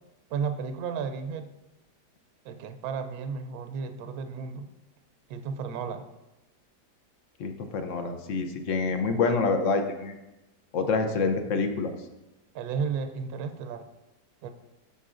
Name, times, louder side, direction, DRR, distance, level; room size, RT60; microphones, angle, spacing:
voice 1, 0.3-1.5 2.4-4.7 5.3-6.1 12.5-13.9 14.4-14.5, right 6 dB, 70° right, 7 dB, 1.0 m, -33 dB
voice 2, 7.4-10.2 10.7-11.9, left 4 dB, 60° left, 6 dB, 0.9 m, -27 dB
11.0 x 6.9 x 2.5 m, 0.99 s
omnidirectional pair, 1.8 m